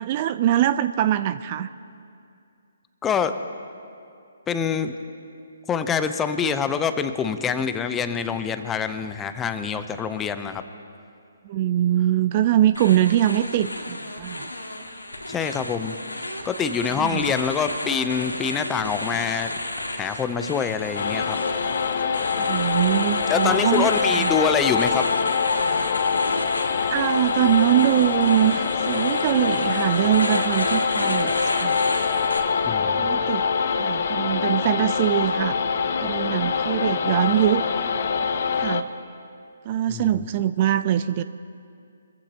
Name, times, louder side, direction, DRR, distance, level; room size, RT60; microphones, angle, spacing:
voice 1, 0.0-1.7 11.4-14.5 16.9-17.2 22.3-23.9 24.2-24.3 26.8-31.8 33.0-33.5 33.7-35.6 36.0-37.6 38.6-38.9 39.7-41.2, right 12 dB, 35° right, 13 dB, 0.4 m, -22 dB
voice 2, 3.0-3.4 4.5-5.0 5.7-10.6 15.3-15.9 16.4-19.5 19.9-21.4 23.3-25.0 32.7-33.3 39.9-40.3, left 6 dB, 15° left, 10 dB, 0.7 m, -25 dB
sound 1, 12.7-32.4, left 1 dB, 90° left, 1.9 m, -32 dB
sound 2, 20.9-38.8, left 6 dB, 50° left, 0.8 m, -24 dB
24.5 x 14.5 x 2.9 m, 2.4 s
figure-of-eight pair, 135°, 0 cm